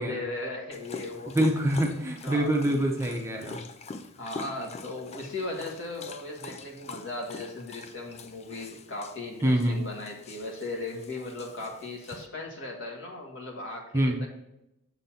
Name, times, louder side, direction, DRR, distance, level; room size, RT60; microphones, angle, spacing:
voice 1, 0.0-1.4 2.2-2.5 4.2-14.3, left 2 dB, 55° left, -1 dB, 1.7 m, -37 dB
Dog, 0.7-12.3, left 4 dB, 30° left, 0.4 m, -44 dB
voice 2, 1.3-3.6 9.4-9.8 13.9-14.2, right 1 dB, 10° right, 1 dB, 0.7 m, -25 dB
7.5 x 4.0 x 5.7 m, 0.86 s
head